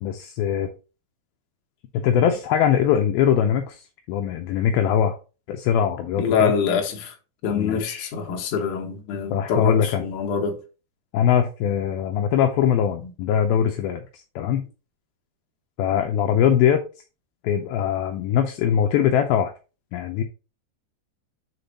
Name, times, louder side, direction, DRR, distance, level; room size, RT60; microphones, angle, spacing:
voice 1, 0.0-0.7 1.9-5.2 5.5-6.5 7.5-8.1 9.3-10.0 11.1-14.7 15.8-16.8 17.4-19.5 19.9-20.2, left 9 dB, 80° left, 2.2 m, -22 dB
voice 2, 6.2-7.1 7.4-10.6, left 6 dB, 60° left, 2.3 m, -25 dB
6.9 x 4.1 x 4.0 m
omnidirectional pair, 4.8 m